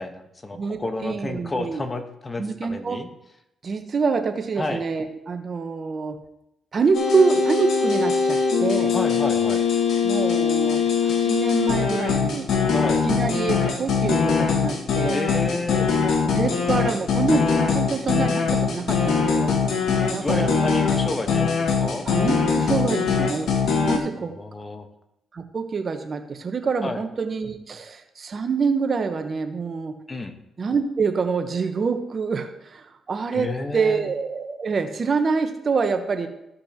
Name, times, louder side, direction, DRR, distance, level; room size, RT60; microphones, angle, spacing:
voice 1, 0.0-3.1 4.6-4.8 8.9-9.6 12.7-13.0 15.1-15.9 20.2-22.1 24.2-24.9 26.8-27.0 30.1-30.3 33.3-34.1, left 2 dB, 30° left, 6 dB, 1.2 m, -30 dB
voice 2, 0.5-1.8 2.4-3.0 3.6-6.2 6.7-8.9 10.0-12.5 13.1-15.2 16.2-19.8 20.1-20.6 22.0-23.5 23.8-24.3 25.3-29.9 30.6-36.3, right 5 dB, 50° right, 7 dB, 1.0 m, -26 dB
sound 1, 6.9-24.0, left 5 dB, 70° left, 1.4 m, -22 dB
14.5 x 5.2 x 2.9 m, 0.84 s
supercardioid pair, 55°, 0 cm